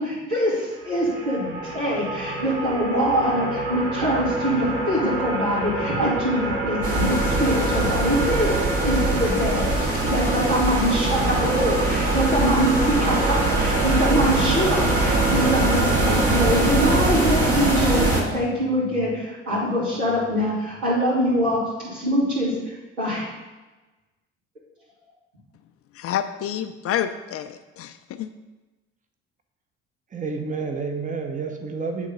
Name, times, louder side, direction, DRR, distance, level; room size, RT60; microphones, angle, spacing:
voice 1, 0.0-8.5 8.8-23.3, equal, 85° right, -8 dB, 2.5 m, -24 dB
sound 1, 0.7-17.5, right 2 dB, 70° right, 1.1 m, -28 dB
sound 2, 6.8-18.2, right 2 dB, 45° right, 1.6 m, -23 dB
voice 2, 25.9-28.3, left 10 dB, 45° left, 10 dB, 0.5 m, -28 dB
voice 3, 30.1-32.1, right 4 dB, 25° right, 4 dB, 0.9 m, -29 dB
8.2 x 3.7 x 5.3 m, 1.2 s
figure-of-eight pair, 50°, 33 cm